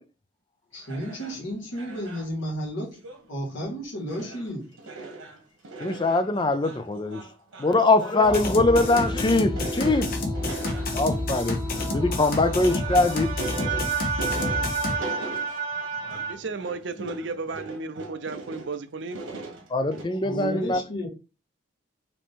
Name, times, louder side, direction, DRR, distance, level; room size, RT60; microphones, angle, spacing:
voice 1, 0.7-3.0 3.3-4.7 20.2-21.1, equal, 75° left, 1.8 m, -32 dB
sound 1, 0.8-1.4 1.7-2.3 2.9-3.2 3.6-3.7 4.1-4.5 4.8-18.8 19.0-20.0, right 2 dB, 85° right, 1.4 m, -40 dB
voice 2, 5.8-7.3 7.6-11.6 11.9-13.4 17.0-17.2 19.7-20.8, left 2 dB, 25° left, 0.4 m, -23 dB
sound 2, 8.2-14.9, left 2 dB, 45° left, 0.8 m, -29 dB
sound 3, 8.3-16.3, right 4 dB, 20° right, 1.5 m, -32 dB
voice 3, 16.3-19.2, right 4 dB, 65° right, 0.6 m, -34 dB
5.0 x 2.9 x 3.6 m
head